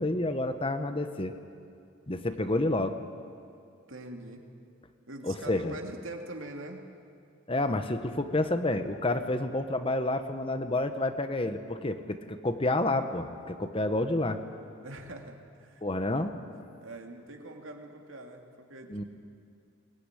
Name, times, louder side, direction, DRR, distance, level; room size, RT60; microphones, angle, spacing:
voice 1, 0.0-1.3 2.1-3.0 5.2-5.8 7.5-14.4 15.8-16.3 18.9-19.0, left 2 dB, 25° left, 8 dB, 1.1 m, -29 dB
voice 2, 3.9-4.4 5.1-6.8 14.8-15.8 16.8-19.0, right 1 dB, 75° right, 3 dB, 2.7 m, -43 dB
21.5 x 19.5 x 9.8 m, 2.4 s
head